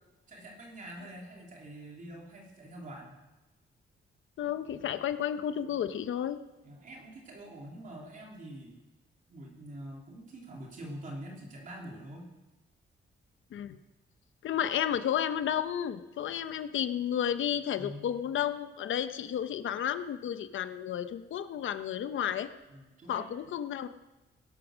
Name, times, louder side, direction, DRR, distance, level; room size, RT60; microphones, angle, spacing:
voice 1, 0.3-3.1 6.6-8.8 9.3-12.3 17.8-18.2 22.7-23.4, right 1 dB, 45° right, 0 dB, 3.2 m, -45 dB
voice 2, 4.4-6.4 13.5-13.8 14.4-22.5 23.1-23.9, left 9 dB, 85° left, 11 dB, 0.9 m, -32 dB
18.0 x 11.5 x 6.2 m, 1.1 s
wide cardioid pair, 175°, 20 cm